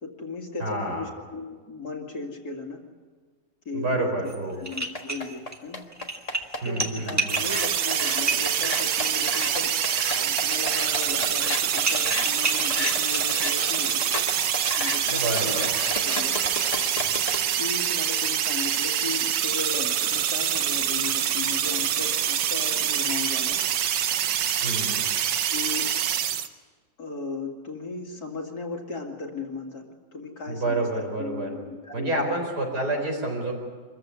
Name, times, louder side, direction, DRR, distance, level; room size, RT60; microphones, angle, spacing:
voice 1, 0.0-2.8 3.7-4.3 4.6-5.9 6.6-9.7 10.1-14.1 14.8-16.4 17.6-23.6 25.5-25.9 27.0-29.8 30.1-30.9 31.2-32.4, left 4 dB, 55° left, 1 dB, 2.7 m, -36 dB
voice 2, 0.6-1.1 3.7-4.6 6.6-7.3 15.1-15.7 24.6-25.0 30.5-31.5 31.9-33.5, right 2 dB, 55° right, 1 dB, 5.3 m, -28 dB
sound 1, 4.3-4.4 4.7-5.6 5.9-13.8, right 2 dB, 10° right, 1.7 m, -32 dB
sound 2, 4.7-17.4, left 1 dB, 20° left, 1.4 m, -33 dB
sound 3, 7.3-26.5, right 9 dB, 85° right, 1.7 m, -25 dB
25.5 x 15.0 x 9.7 m, 1.5 s
omnidirectional pair, 2.0 m